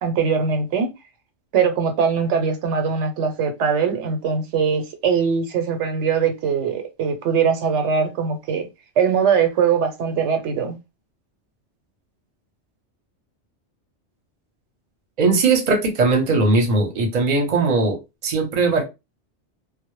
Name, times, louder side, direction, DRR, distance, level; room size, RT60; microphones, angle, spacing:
voice 1, 0.0-0.9 1.5-8.7 9.0-10.8, right 6 dB, 85° right, 0.9 m, -21 dB
voice 2, 15.2-18.8, right 3 dB, 45° right, 0.7 m, -19 dB
2.0 x 2.0 x 3.0 m
omnidirectional pair, 1.2 m